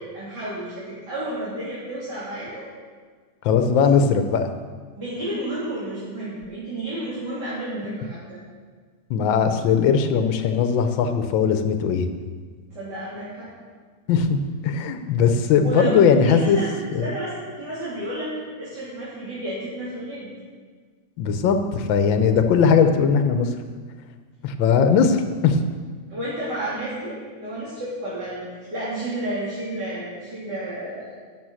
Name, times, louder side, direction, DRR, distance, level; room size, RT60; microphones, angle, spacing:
voice 1, 0.1-2.7 3.7-3.8 4.9-8.4 12.7-13.5 15.6-16.0 16.2-20.3 26.1-31.1, right 1 dB, 60° right, -10 dB, 3.7 m, -31 dB
voice 2, 3.4-4.5 9.1-12.1 14.1-16.6 16.9-17.1 21.2-23.5 24.4-25.6, left 6 dB, 90° left, 7 dB, 1.5 m, -19 dB
12.0 x 6.9 x 6.2 m, 1.5 s
omnidirectional pair, 2.0 m